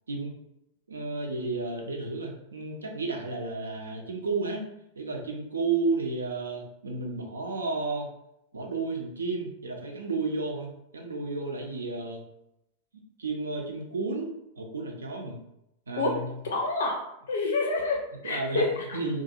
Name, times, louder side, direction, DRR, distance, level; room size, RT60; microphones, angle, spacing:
voice 1, 0.9-4.7 4.9-8.1 8.5-12.2 12.9-15.4 15.9-16.3 18.2-18.6 18.9-19.2, right 3 dB, 75° right, 2 dB, 0.5 m, -32 dB
voice 2, 16.4-17.0 17.3-19.0, left 3 dB, 65° left, 0 dB, 0.5 m, -28 dB
2.4 x 2.2 x 2.7 m, 0.82 s
figure-of-eight pair, 90°, 0 cm